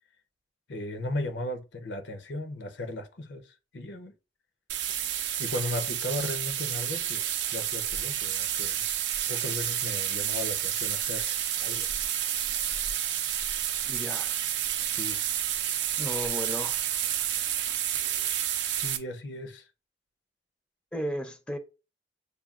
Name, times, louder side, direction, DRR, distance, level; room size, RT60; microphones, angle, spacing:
voice 1, 0.7-4.1 5.4-8.9 9.3-11.9 14.9-15.2 18.7-19.7, left 1 dB, 90° left, 0.7 m, -36 dB
sound 1, 4.7-19.0, right 10 dB, 70° right, 0.5 m, -30 dB
voice 2, 13.8-14.3 16.0-16.8 20.9-21.6, equal, 5° left, 0.4 m, -34 dB
6.7 x 2.3 x 2.4 m
head